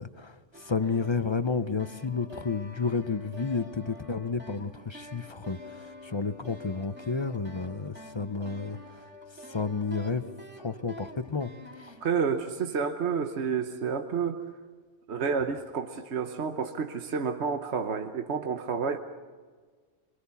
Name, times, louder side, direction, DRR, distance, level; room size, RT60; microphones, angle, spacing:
voice 1, 0.0-9.0 9.5-10.2 10.6-11.5 11.8-11.9, left 4 dB, 30° left, 11 dB, 0.6 m, -31 dB
sound 1, 0.5-12.4, left 1 dB, 10° right, 2.2 m, -47 dB
voice 2, 12.0-14.4 15.1-19.0, right 6 dB, 65° right, 6 dB, 1.2 m, -30 dB
24.5 x 23.0 x 7.0 m, 1.5 s
omnidirectional pair, 1.3 m